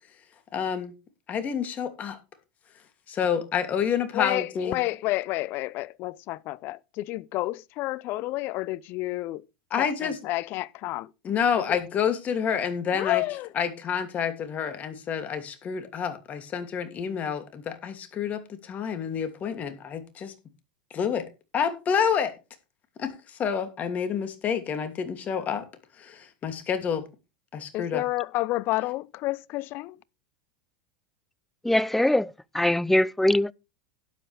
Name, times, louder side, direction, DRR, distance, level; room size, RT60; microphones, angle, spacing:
voice 1, 0.5-0.9 1.3-2.2 3.1-4.8 9.7-10.2 11.2-13.2 13.5-20.3 20.9-21.3 21.5-22.3 23.0-25.6 26.0-27.0 27.5-28.0, left 7 dB, 35° left, 2.8 m, -28 dB
voice 2, 4.1-9.4 9.8-11.1 12.9-13.5 27.7-30.0, left 18 dB, 50° left, 0.6 m, -30 dB
voice 3, 31.6-33.5, left 1 dB, 5° left, 0.5 m, -22 dB
12.5 x 11.0 x 3.5 m
hypercardioid pair, 105°, 5 cm